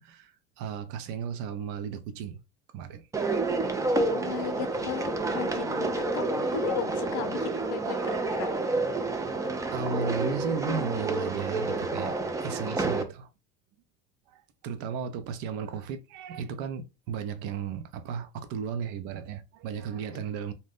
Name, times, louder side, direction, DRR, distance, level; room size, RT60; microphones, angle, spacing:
voice 1, 0.0-2.4 2.7-3.1 9.7-12.1 12.4-13.3 14.3-20.5, right 6 dB, 60° right, 0.7 m, -35 dB
sound 1, 3.1-13.0, right 3 dB, 10° right, 0.4 m, -29 dB
voice 2, 4.1-8.5, left 9 dB, 60° left, 0.6 m, -36 dB
2.7 x 2.1 x 3.4 m
hypercardioid pair, 90°, 34 cm